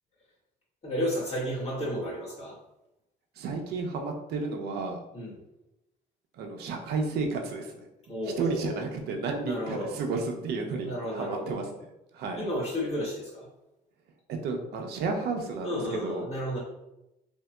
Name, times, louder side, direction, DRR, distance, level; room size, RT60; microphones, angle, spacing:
voice 1, 0.8-2.6 5.1-5.3 8.1-8.8 9.4-9.9 10.8-11.6 12.4-13.5 15.6-16.6, equal, 40° left, -6 dB, 1.4 m, -32 dB
voice 2, 3.3-5.0 6.3-7.9 8.2-11.7 12.1-12.5 14.3-16.3, right 4 dB, 75° right, 3 dB, 0.6 m, -32 dB
2.9 x 2.6 x 2.2 m, 0.91 s
cardioid pair, 110°, 17 cm